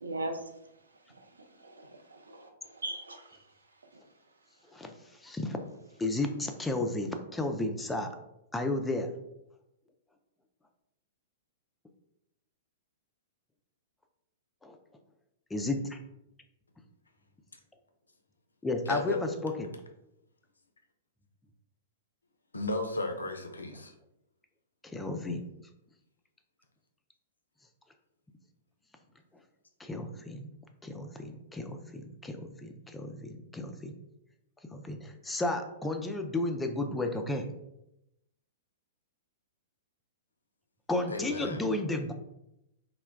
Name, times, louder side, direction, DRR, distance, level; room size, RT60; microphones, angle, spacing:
voice 1, 0.0-3.5 3.9-4.0, right 2 dB, 85° right, 4 dB, 0.4 m, -41 dB
voice 2, 5.2-5.6 6.0-8.1 8.5-9.1 14.6-14.8 15.5-16.0 18.6-19.2 19.4-19.7 24.9-25.4 29.8-30.5 30.8-33.9 34.7-37.5 40.9-42.1, left 2 dB, 10° left, 5 dB, 0.3 m, -33 dB
voice 3, 18.9-19.3 22.5-23.9 41.1-41.7, left 2 dB, 85° left, 5 dB, 0.4 m, -34 dB
2.2 x 2.1 x 3.3 m, 0.86 s
figure-of-eight pair, 110°, 0 cm